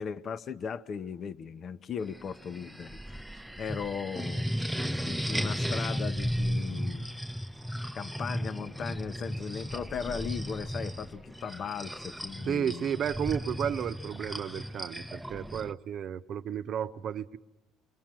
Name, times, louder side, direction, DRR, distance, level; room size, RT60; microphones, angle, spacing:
voice 1, 0.0-3.3 3.6-4.5 5.1-7.1 7.9-12.9, left 7 dB, 45° left, 0.9 m, -37 dB
sound 1, 2.0-15.7, equal, ahead, 0.9 m, -35 dB
voice 2, 12.5-17.4, right 9 dB, 55° right, 0.9 m, -33 dB
28.0 x 22.0 x 7.5 m
supercardioid pair, 85°, 0 cm